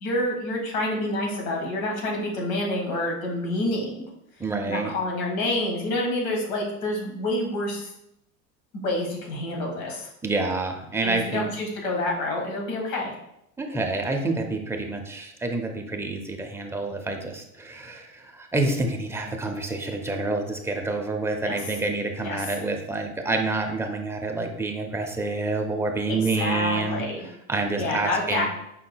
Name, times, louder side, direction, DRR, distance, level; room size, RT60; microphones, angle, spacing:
voice 1, 0.0-4.1 4.7-7.9 8.8-10.1 11.0-13.1 21.5-21.6 22.2-22.4 26.1-27.3 27.8-28.6, left 1 dB, 75° left, 0 dB, 1.6 m, -28 dB
voice 2, 4.4-4.9 10.2-11.5 13.6-27.0 27.5-28.5, right 3 dB, 5° right, 2 dB, 0.5 m, -28 dB
5.3 x 3.7 x 2.3 m, 0.80 s
hypercardioid pair, 95°, 42 cm